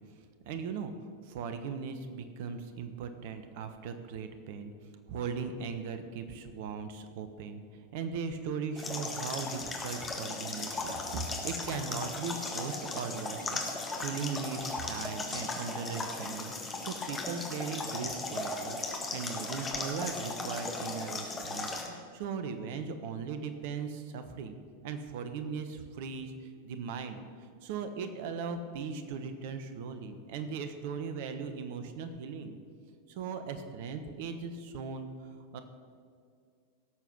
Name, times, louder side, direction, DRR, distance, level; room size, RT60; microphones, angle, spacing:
voice 1, 0.4-0.9 1.3-4.7 5.1-7.6 7.9-18.8 19.1-24.6 24.8-27.2 27.6-32.6 33.1-35.1 35.5-35.6, right 5 dB, 50° right, 9 dB, 1.1 m, -38 dB
sound 1, 8.8-21.9, left 3 dB, 15° left, 1.8 m, -37 dB
17.5 x 7.2 x 6.1 m, 2.1 s
figure-of-eight pair, 90°, 0 cm